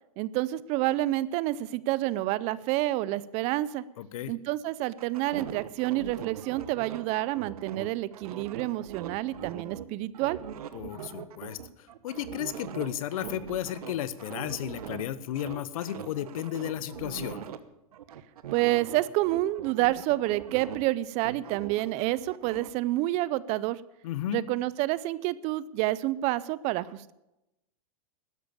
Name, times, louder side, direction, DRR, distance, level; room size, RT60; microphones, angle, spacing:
voice 1, 0.2-3.8 4.3-10.4 18.5-23.8 24.3-27.1, right 16 dB, 35° right, 19 dB, 0.5 m, -28 dB
voice 2, 4.0-4.3 10.7-11.6 12.0-17.5 24.0-24.4, left 12 dB, 70° left, 16 dB, 1.0 m, -33 dB
sound 1, 5.0-9.8 10.1-15.1 15.3-17.6 17.9-20.9 21.2-22.7, right 9 dB, 80° right, 1.1 m, -41 dB
12.5 x 10.5 x 7.0 m, 0.93 s
hypercardioid pair, 135°, 19 cm